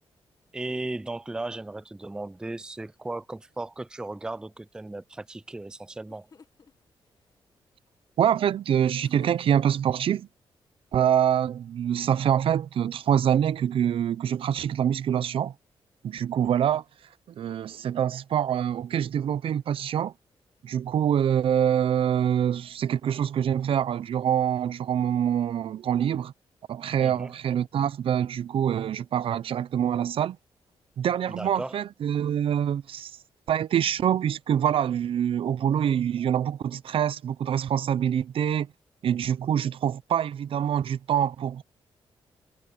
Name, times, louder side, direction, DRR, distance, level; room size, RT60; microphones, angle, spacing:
voice 1, 0.5-6.3 27.0-27.3 31.3-31.8, right 2 dB, 10° right, 0.4 m, -36 dB
sound 1, 5.7-5.8 6.1-6.7 9.0-9.9, left 5 dB, 40° left, 1.6 m, -52 dB
voice 2, 8.2-10.3 10.9-15.5 16.0-16.8 17.4-20.1 20.6-26.3 26.7-30.4 31.0-33.1 33.5-38.7 39.0-41.6, right 9 dB, 70° right, 0.7 m, -25 dB
cardioid pair, 85°, 10 cm